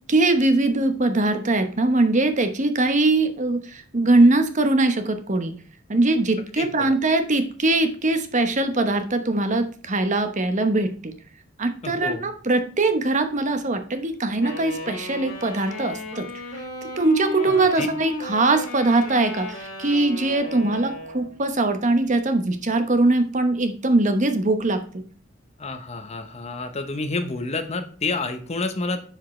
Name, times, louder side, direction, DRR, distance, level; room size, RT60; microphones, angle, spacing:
voice 1, 0.1-5.5 5.9-11.2 11.6-16.3 17.0-24.8, right 2 dB, 40° right, 8 dB, 1.0 m, -21 dB
voice 2, 6.6-7.0 11.8-12.3 17.5-17.9 25.6-29.0, left 3 dB, 35° left, 8 dB, 0.9 m, -29 dB
Wind instrument woodwind instrument, 14.4-21.4, left 2 dB, 50° left, 3.6 m, -35 dB
9.7 x 5.0 x 3.2 m, 0.43 s
head